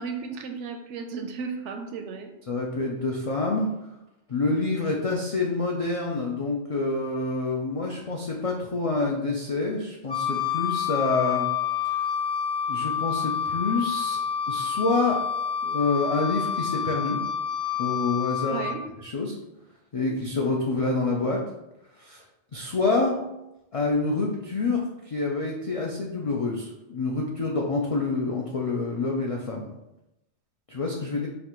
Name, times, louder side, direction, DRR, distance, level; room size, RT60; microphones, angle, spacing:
voice 1, 0.0-2.3 18.5-18.8, right 5 dB, 80° right, 5 dB, 0.9 m, -34 dB
voice 2, 2.5-3.7 4.3-11.5 12.7-14.2 14.5-15.2 15.6-17.2 17.8-18.6 19.0-19.4 19.9-21.4 22.0-22.2 22.5-23.2 23.7-24.8 25.1-29.7 30.7-31.3, left 3 dB, 65° left, -1 dB, 0.3 m, -27 dB
Wind instrument woodwind instrument, 10.1-18.8, left 8 dB, 40° left, 0.9 m, -28 dB
5.1 x 2.5 x 3.0 m, 0.90 s
omnidirectional pair, 1.2 m